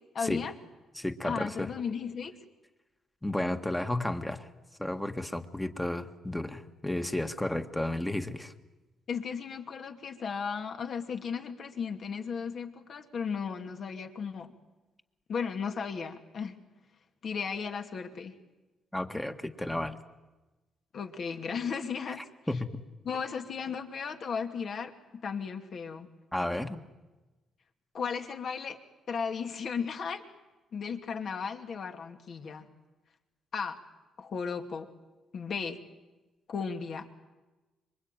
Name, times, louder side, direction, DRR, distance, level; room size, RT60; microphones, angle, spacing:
voice 1, 0.1-0.5 1.2-2.3 9.1-14.5 15.3-16.6 17.2-18.3 20.9-22.2 23.0-26.1 27.9-28.8 29.1-30.2 30.7-32.7 33.5-33.8 34.2-34.9 35.3-35.8 36.5-37.1, left 6 dB, 55° left, 5 dB, 2.5 m, -35 dB
voice 2, 0.9-1.7 3.2-4.5 4.8-8.5 18.9-20.0 22.5-22.8 26.3-26.8, left 1 dB, 10° left, 7 dB, 1.7 m, -32 dB
26.0 x 23.5 x 9.2 m, 1.1 s
cardioid pair, 90°, 0 cm